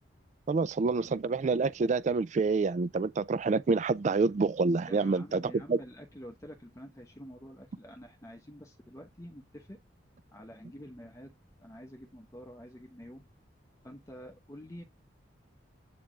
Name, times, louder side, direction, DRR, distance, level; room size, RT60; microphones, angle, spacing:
voice 1, 0.5-5.4 5.7-5.8, right 4 dB, 40° right, 0.3 m, -27 dB
voice 2, 4.9-9.8 10.3-13.2 13.8-14.8, equal, 15° left, 0.8 m, -48 dB
8.5 x 3.4 x 3.6 m
head